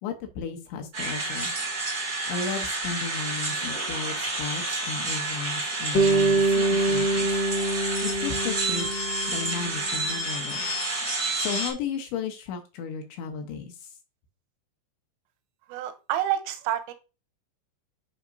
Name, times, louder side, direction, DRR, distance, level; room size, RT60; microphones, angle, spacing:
voice 1, 0.0-1.5 2.3-7.4 8.0-8.9 9.3-10.7 11.4-14.0, left 6 dB, 75° left, 4 dB, 2.9 m, -34 dB
sound 1, 0.9-11.7, right 2 dB, 60° right, 0.9 m, -30 dB
Bass guitar, 5.9-10.2, right 2 dB, 50° left, 1.3 m, -25 dB
voice 2, 15.7-16.9, right 12 dB, 85° right, 10 dB, 3.2 m, -28 dB
11.0 x 4.9 x 2.6 m, 0.31 s
omnidirectional pair, 5.9 m